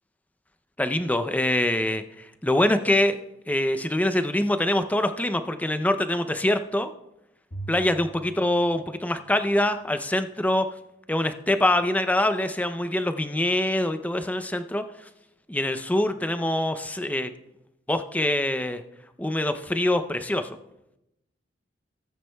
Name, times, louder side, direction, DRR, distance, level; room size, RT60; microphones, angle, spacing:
voice 1, 0.8-3.2 3.5-6.9 7.7-10.7 11.1-14.8 15.5-17.3 17.9-18.8 19.2-20.6, left 1 dB, 10° left, 9 dB, 0.5 m, -24 dB
Bowed string instrument, 7.5-9.9, right 2 dB, 50° left, 1.6 m, -43 dB
18.0 x 9.3 x 2.3 m, 0.86 s
head